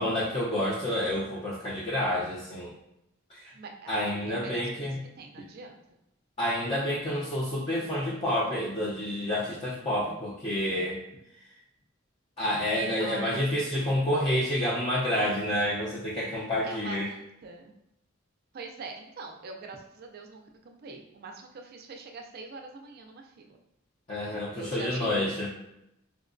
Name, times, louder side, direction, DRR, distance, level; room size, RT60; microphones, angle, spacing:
voice 1, 0.0-2.7 3.3-3.5 3.9-5.0 6.4-11.0 12.4-17.1 24.1-25.5, left 1 dB, 30° left, -8 dB, 0.5 m, -29 dB
voice 2, 3.5-5.8 13.0-13.4 16.6-17.7 18.5-23.6 24.5-25.4, right 4 dB, 50° right, 3 dB, 0.4 m, -43 dB
4.5 x 2.1 x 2.5 m, 0.83 s
head